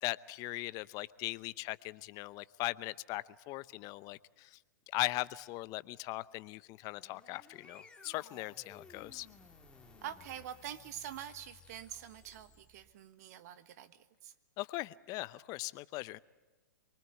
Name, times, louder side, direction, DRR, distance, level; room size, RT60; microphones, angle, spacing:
voice 1, 0.0-4.6 4.9-9.3 14.6-16.2, left 19 dB, 35° left, 18 dB, 0.7 m, -39 dB
sound 1, 6.7-13.0, left 4 dB, 10° left, 2.3 m, -58 dB
voice 2, 10.0-14.3, right 10 dB, 55° right, 13 dB, 1.4 m, -46 dB
24.5 x 23.0 x 7.9 m, 1.3 s
hypercardioid pair, 120°, 10 cm